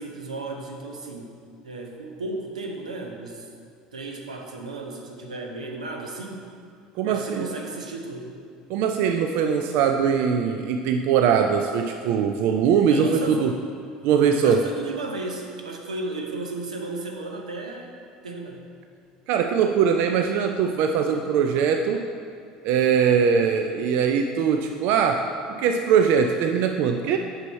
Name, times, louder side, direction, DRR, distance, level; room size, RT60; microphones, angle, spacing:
voice 1, 0.0-1.4 1.6-3.5 3.9-6.5 7.0-8.4 12.9-13.5 14.4-17.9 18.2-18.6, right 2 dB, 85° right, 2 dB, 0.7 m, -34 dB
voice 2, 7.0-7.5 8.7-13.6 14.0-14.7 19.3-22.1 22.6-25.3 25.5-27.2, right 7 dB, 60° right, 5 dB, 0.4 m, -21 dB
6.7 x 5.7 x 4.4 m, 2.3 s
hypercardioid pair, 70°, 4 cm